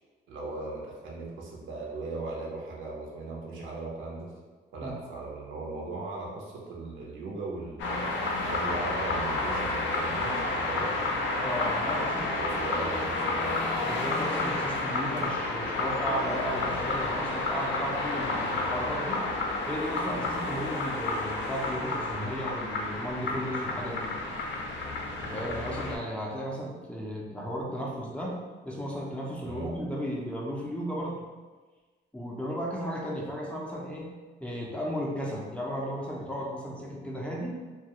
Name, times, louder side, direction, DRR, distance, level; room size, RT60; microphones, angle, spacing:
voice 1, 0.3-4.3 4.7-8.1 8.4-10.9 11.8-13.5 29.4-29.7, right 3 dB, 75° right, -2 dB, 0.7 m, -38 dB
sound 1, 7.8-26.0, left 2 dB, 70° left, 0.5 m, -30 dB
voice 2, 11.4-12.3 13.8-19.2 19.7-24.1 25.2-31.3 32.1-34.1 34.4-37.5, equal, 5° left, -3 dB, 0.4 m, -35 dB
2.3 x 2.2 x 2.8 m, 1.4 s
cardioid pair, 90°, 20 cm